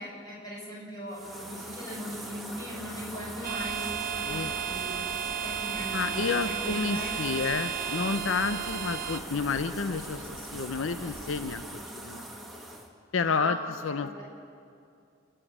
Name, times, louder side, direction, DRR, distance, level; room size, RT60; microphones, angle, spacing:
voice 1, 0.0-5.0 5.4-7.6 13.2-14.2, equal, 20° left, -5 dB, 6.7 m, -39 dB
sound 1, 1.1-12.9, right 1 dB, ahead, 1.7 m, -41 dB
sound 2, 3.4-9.2, right 9 dB, 45° right, 0.9 m, -34 dB
sound 3, 3.5-11.6, right 2 dB, 80° right, 1.4 m, -48 dB
voice 2, 5.9-11.7 12.0-12.2 13.1-13.6 13.8-14.2, left 5 dB, 80° left, 11 dB, 0.6 m, -30 dB
28.5 x 10.0 x 10.0 m, 2.4 s
head